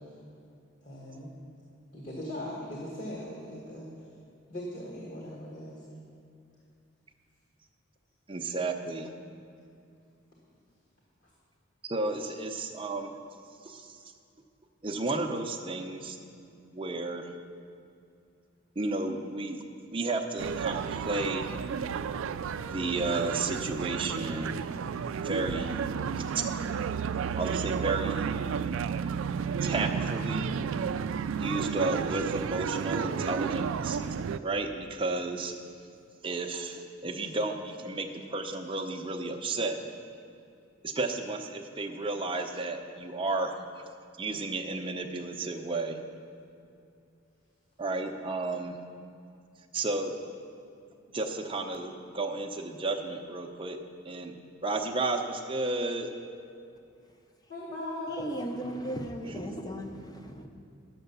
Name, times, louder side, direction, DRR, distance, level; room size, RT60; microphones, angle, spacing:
voice 1, 0.8-1.3 1.9-3.9 4.5-5.8 57.5-58.3, left 1 dB, 40° left, -5 dB, 1.7 m, -39 dB
voice 2, 8.3-9.1 11.8-13.2 13.6-14.0 14.8-16.2 16.7-17.3 18.8-19.6 19.9-21.5 22.7-24.6 25.2-25.9 26.2-26.4 27.4-28.3 29.6-30.5 31.4-34.0 34.4-35.5 36.2-39.8 40.8-43.8 44.2-46.0 47.8-48.8 49.7-50.1 51.1-53.8 54.0-54.3 54.6-56.1 59.2-59.4, right 3 dB, 25° right, 3 dB, 0.7 m, -32 dB
sound 1, 20.4-34.4, right 6 dB, 75° right, 0.3 m, -32 dB
voice 3, 58.1-60.5, right 1 dB, 20° left, 4 dB, 0.7 m, -36 dB
10.5 x 6.8 x 6.8 m, 2.5 s
head